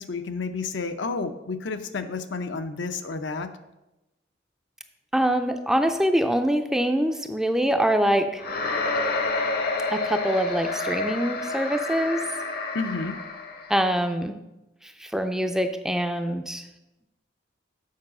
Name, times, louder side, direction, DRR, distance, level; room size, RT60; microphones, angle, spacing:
voice 1, 0.0-3.5 12.7-13.2, left 4 dB, 75° left, 8 dB, 0.6 m, -30 dB
voice 2, 5.1-8.4 9.9-12.2 13.7-14.3 15.0-16.6, equal, 5° right, 6 dB, 0.4 m, -24 dB
sound 1, 8.4-13.8, left 3 dB, 50° left, 0.9 m, -29 dB
7.5 x 4.8 x 6.0 m, 0.97 s
head